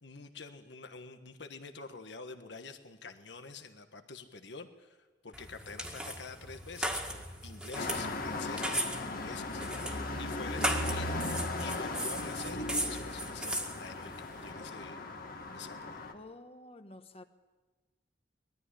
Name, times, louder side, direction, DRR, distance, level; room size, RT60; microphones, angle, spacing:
voice 1, 0.0-5.0 5.2-9.6 10.2-11.2 11.6-15.0 15.5-16.0, left 4 dB, 75° left, 1.4 m, -47 dB
sound 1, 5.3-14.5, right 1 dB, 5° right, 1.9 m, -38 dB
sound 2, 7.7-16.1, left 2 dB, 50° left, 1.9 m, -37 dB
voice 2, 10.7-11.3 16.1-17.2, left 2 dB, 35° left, 1.2 m, -49 dB
21.0 x 13.5 x 9.9 m
head